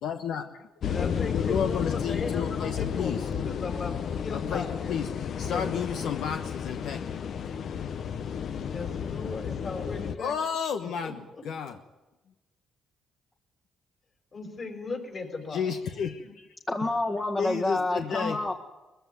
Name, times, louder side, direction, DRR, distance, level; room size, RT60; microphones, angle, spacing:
voice 1, 0.0-0.7 1.3-3.3 4.3-7.2 10.2-11.2 11.4-11.8 15.5-16.5 17.4-18.4, left 7 dB, 80° left, 6 dB, 1.1 m, -32 dB
sound 1, 0.8-10.2, left 7 dB, 60° left, 0.9 m, -32 dB
voice 2, 0.8-5.1 5.4-5.7 8.5-10.3 10.8-11.1 14.3-15.6, left 3 dB, 45° left, 4 dB, 5.6 m, -37 dB
voice 3, 16.7-18.5, left 2 dB, 25° left, 1 dB, 1.7 m, -28 dB
21.0 x 15.0 x 9.4 m, 1.1 s
cardioid pair, 90°, 0 cm